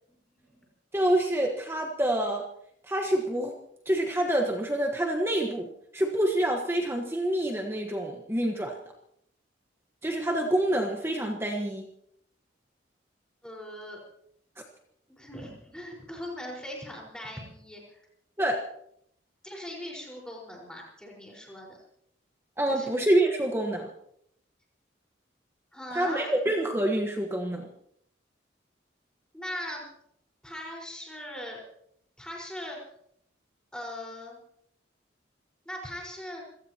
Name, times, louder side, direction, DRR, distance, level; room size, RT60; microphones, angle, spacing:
voice 1, 0.1-0.6 13.4-14.0 15.2-18.0 19.4-21.8 22.7-23.1 25.7-26.3 29.3-29.8 30.4-31.6 32.2-32.8 33.7-34.4 35.6-36.4, equal, 5° left, -2 dB, 4.8 m, -40 dB
voice 2, 0.9-2.5 2.8-3.5 3.8-5.7 5.9-8.8 10.0-11.9 18.4-18.6 22.6-23.9 25.9-27.7, right 1 dB, 15° right, 1 dB, 1.4 m, -27 dB
27.5 x 17.5 x 3.0 m, 0.70 s
head